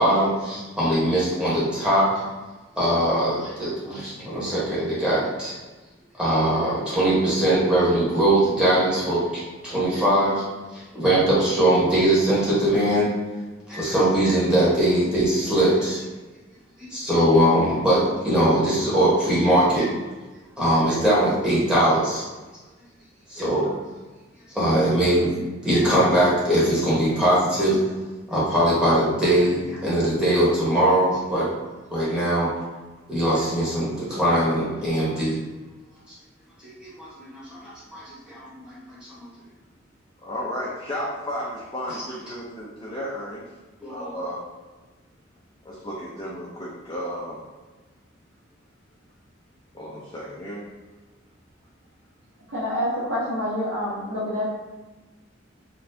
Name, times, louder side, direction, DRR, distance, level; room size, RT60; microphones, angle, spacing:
voice 1, 0.0-2.2 2.8-5.5 6.2-10.4 10.7-13.1 13.7-16.0 16.8-19.9 20.6-22.2 23.3-23.7 24.5-25.3 25.6-27.8 28.3-31.5 31.9-32.5 33.1-35.4 36.6-39.3 43.8-44.1, right 1 dB, 5° right, -9 dB, 1.0 m, -21 dB
voice 2, 40.2-43.4 43.9-44.5 45.6-47.4 49.7-50.7, equal, 20° left, -7 dB, 0.5 m, -33 dB
voice 3, 52.5-54.5, equal, 70° right, -8 dB, 0.9 m, -27 dB
4.1 x 2.3 x 2.7 m, 1.2 s
head